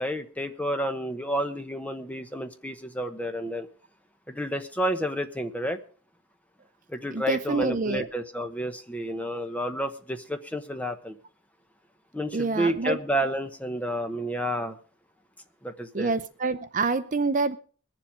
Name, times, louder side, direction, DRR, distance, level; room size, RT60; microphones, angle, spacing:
voice 1, 0.0-3.7 4.3-5.8 6.9-11.2 12.1-14.8 15.6-16.1, equal, 5° left, 6 dB, 1.0 m, -30 dB
voice 2, 7.1-8.1 12.3-13.0 15.9-17.6, right 3 dB, 40° right, 11 dB, 0.6 m, -26 dB
21.5 x 7.5 x 5.0 m, 0.42 s
head